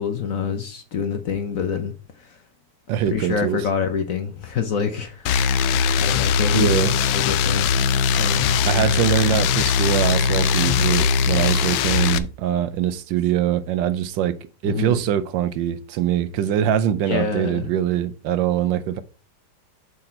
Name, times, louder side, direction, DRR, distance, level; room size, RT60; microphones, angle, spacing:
voice 1, 0.0-1.9 2.2-2.4 3.1-5.4 6.0-6.8 7.1-7.7 8.2-8.6 14.6-15.0 17.0-17.7, left 6 dB, 55° left, 1.0 m, -26 dB
voice 2, 2.9-3.6 6.5-6.9 8.7-14.4 14.6-19.0, right 10 dB, 75° right, 1.3 m, -23 dB
sound 1, 5.3-12.2, left 6 dB, 90° left, 1.3 m, -20 dB
7.6 x 4.2 x 4.3 m
omnidirectional pair, 2.1 m